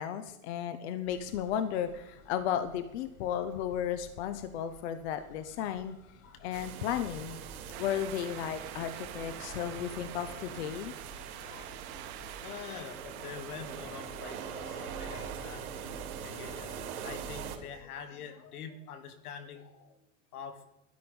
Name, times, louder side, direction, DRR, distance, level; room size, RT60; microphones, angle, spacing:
voice 1, 0.0-6.0 6.4-7.4 7.8-10.9, left 9 dB, 50° left, 10 dB, 0.9 m, -34 dB
sound 1, 1.0-12.5, left 3 dB, 65° left, 4.2 m, -57 dB
sound 2, 6.5-17.6, right 7 dB, 65° right, 3.1 m, -43 dB
sound 3, 7.7-14.5, right 12 dB, 45° right, 1.6 m, -47 dB
voice 2, 11.1-11.7 12.4-15.7 16.0-20.0 20.3-20.7, left 7 dB, 80° left, 7 dB, 2.2 m, -46 dB
12.5 x 11.0 x 5.4 m, 0.94 s
supercardioid pair, 170°, 44 cm